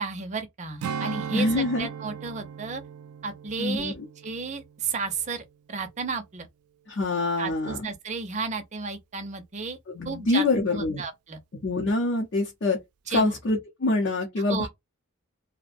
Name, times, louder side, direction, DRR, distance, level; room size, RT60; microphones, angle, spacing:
voice 1, 0.0-2.8 3.2-4.0 4.2-6.5 7.4-9.8 10.0-11.4 13.1-13.3 14.5-14.7, right 4 dB, 30° right, 0.5 m, -33 dB
Strum, 0.8-5.5 5.9-6.1, right 7 dB, 90° right, 0.3 m, -38 dB
voice 2, 1.3-1.9 3.6-4.1 6.9-7.8 9.9-11.0 11.6-12.8 13.1-14.7, left 2 dB, 55° left, 0.6 m, -25 dB
2.5 x 2.1 x 2.5 m
head